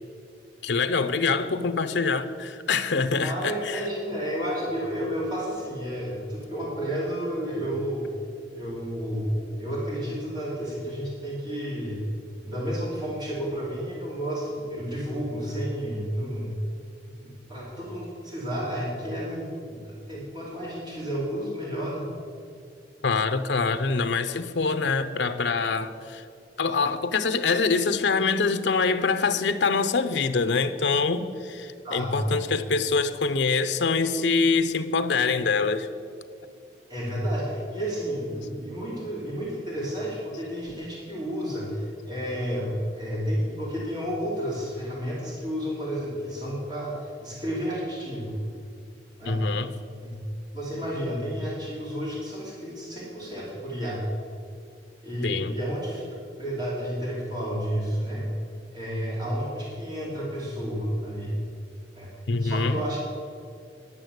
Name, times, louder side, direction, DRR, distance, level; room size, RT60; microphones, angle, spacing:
voice 1, 0.6-3.8 23.0-26.2 26.6-35.9 49.3-49.7 55.2-55.5 62.3-62.8, left 4 dB, 80° left, 11 dB, 0.7 m, -25 dB
voice 2, 3.2-8.1 8.5-12.0 12.4-16.5 17.2-22.1 31.8-32.3 36.9-48.3 49.2-49.4 50.0-50.1 50.5-54.0 55.0-56.0 56.4-58.3 58.7-61.4 61.9-63.0, equal, 25° right, -6 dB, 2.9 m, -31 dB
11.0 x 7.2 x 7.9 m, 2.4 s
head